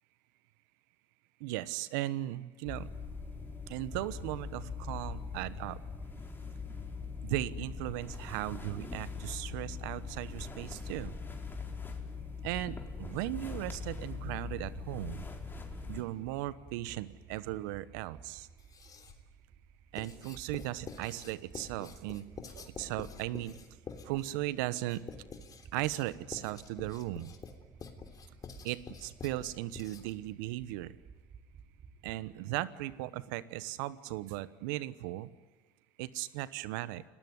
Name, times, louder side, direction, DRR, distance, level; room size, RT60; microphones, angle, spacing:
voice 1, 1.4-2.9 3.7-5.8 7.2-11.1 12.4-15.2 15.9-18.5 19.9-23.6 24.0-25.0 25.7-27.3 28.6-31.0 32.0-35.3 36.0-37.0, right 16 dB, 75° right, 16 dB, 1.1 m, -37 dB
sound 1, 2.7-16.0, left 4 dB, 20° left, 4.7 m, -42 dB
sound 2, 14.9-32.4, right 5 dB, 40° right, 2.7 m, -56 dB
Writing, 18.6-19.3 20.0-30.3, left 5 dB, 35° left, 3.4 m, -48 dB
29.5 x 19.0 x 9.6 m, 1.3 s
hypercardioid pair, 75°, 10 cm